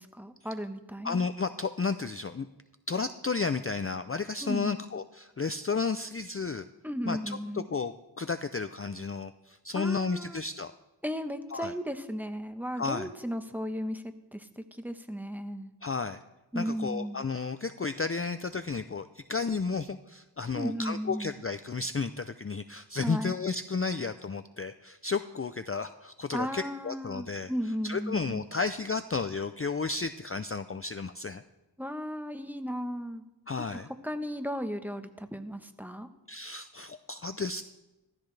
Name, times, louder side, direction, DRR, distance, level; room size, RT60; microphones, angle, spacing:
voice 1, 0.0-1.2 4.4-4.8 6.8-7.7 9.7-10.4 11.0-15.7 16.5-17.2 20.5-21.3 23.0-23.4 26.3-28.5 31.8-33.2 33.7-36.1, equal, 5° right, 8 dB, 1.1 m, -35 dB
voice 2, 1.0-2.5 2.9-6.7 7.1-10.7 11.5-11.7 12.8-13.1 15.8-16.2 16.5-27.5 27.8-31.4 33.5-33.9 36.3-37.6, left 4 dB, 30° left, 10 dB, 0.5 m, -32 dB
15.0 x 14.0 x 3.3 m, 1.0 s
wide cardioid pair, 45°, 44 cm